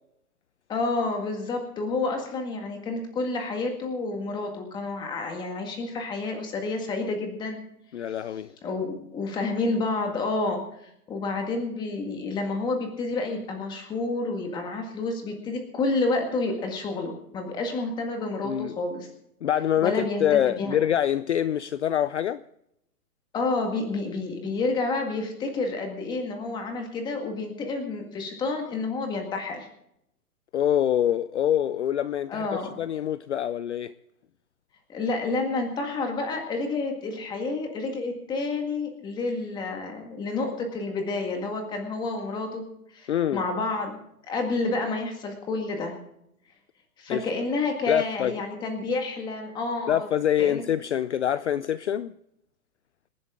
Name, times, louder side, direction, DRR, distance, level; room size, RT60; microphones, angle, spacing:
voice 1, 0.7-7.6 8.6-10.6 11.1-19.1 19.8-20.8 23.3-29.7 32.3-32.8 34.9-42.6 42.9-46.0 47.0-50.1 50.4-50.6, left 3 dB, 10° left, 1.9 m, -29 dB
voice 2, 7.9-8.5 18.4-18.7 19.4-22.4 30.5-32.5 32.8-33.9 43.1-43.4 47.1-47.3 47.9-48.3 49.9-52.1, left 10 dB, 50° left, 0.5 m, -25 dB
26.5 x 10.5 x 3.7 m
hypercardioid pair, 165°, 45 cm